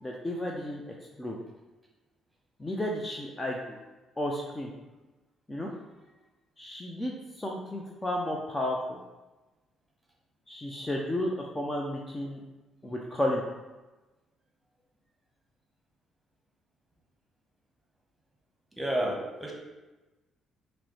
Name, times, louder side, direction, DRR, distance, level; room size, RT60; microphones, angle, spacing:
voice 1, 0.0-0.8 1.2-1.4 2.6-3.8 4.2-4.7 5.5-5.7 6.6-9.0 10.5-12.4 12.8-13.4, left 1 dB, 20° left, -1 dB, 0.5 m, -32 dB
voice 2, 18.8-19.5, right 1 dB, 10° right, -1 dB, 1.1 m, -30 dB
5.8 x 2.1 x 3.2 m, 1.1 s
figure-of-eight pair, 45°, 0 cm